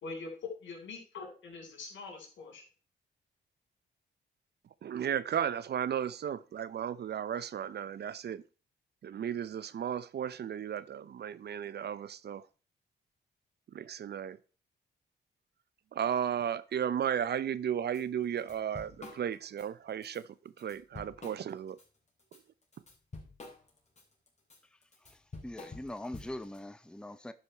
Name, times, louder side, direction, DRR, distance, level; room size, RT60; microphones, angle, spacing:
voice 1, 0.0-2.6, left 4 dB, 75° left, 4.3 m, -43 dB
voice 2, 4.8-8.4 9.0-12.5 13.7-14.4 15.9-20.3 20.6-21.8, right 9 dB, 60° right, 0.7 m, -34 dB
Drum kit / Drum, 17.9-18.0 18.4-19.7 20.0-20.2 20.6-21.8 22.2-26.6, left 2 dB, 35° left, 3.7 m, -48 dB
voice 3, 25.1-27.3, left 1 dB, 5° left, 0.8 m, -42 dB
11.5 x 5.5 x 4.5 m
cardioid pair, 65°, 19 cm